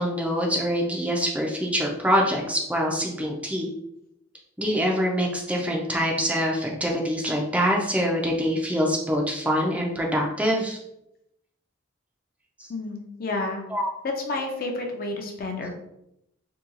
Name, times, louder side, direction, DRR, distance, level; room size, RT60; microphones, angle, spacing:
voice 1, 0.0-3.7 4.6-10.8 13.7-13.9, equal, 5° right, -1 dB, 0.4 m, -25 dB
voice 2, 12.7-13.6 14.0-15.7, left 2 dB, 50° left, 2 dB, 0.5 m, -30 dB
2.8 x 2.3 x 3.7 m, 0.81 s
head